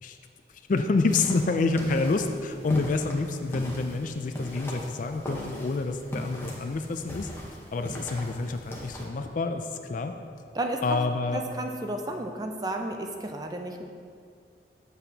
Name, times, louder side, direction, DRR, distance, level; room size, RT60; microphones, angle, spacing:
voice 1, 0.7-7.3 7.7-10.2 10.8-11.4, left 3 dB, 50° left, 7 dB, 0.4 m, -28 dB
sound 1, 1.0-9.0, equal, 15° left, 0.9 m, -40 dB
voice 2, 10.5-11.0 11.3-13.8, right 1 dB, 20° right, 4 dB, 0.4 m, -32 dB
7.6 x 7.0 x 2.8 m, 2.3 s
head